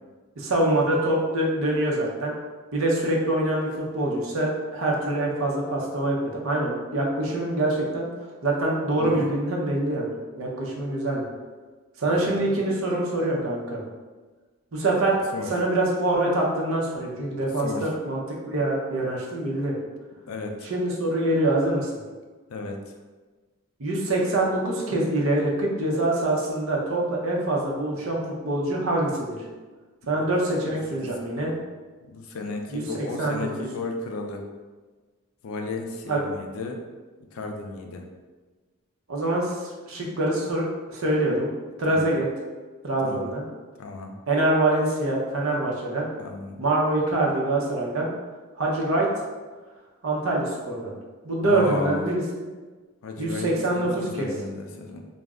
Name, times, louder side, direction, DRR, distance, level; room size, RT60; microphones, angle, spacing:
voice 1, 0.4-2.3 2.7-8.1 8.4-11.2 12.0-13.8 14.7-15.2 15.4-19.7 20.6-21.9 23.8-29.4 30.1-31.5 32.7-33.5 36.0-36.2 39.1-41.5 41.8-42.3 42.8-43.4 44.3-46.1 46.6-48.1 48.6-49.1 50.0-50.9 51.2-52.5 53.2-54.3, right 1 dB, 70° right, -3 dB, 0.6 m, -25 dB
voice 2, 9.0-9.3 15.3-15.5 17.6-17.9 20.3-20.7 22.5-22.8 31.0-31.5 32.1-34.4 35.4-36.8 37.3-38.1 41.9-42.1 43.0-43.3 43.8-44.1 46.2-46.6 51.4-52.0 53.0-55.0, left 3 dB, 70° left, 3 dB, 0.4 m, -34 dB
2.4 x 2.0 x 3.5 m, 1.3 s
head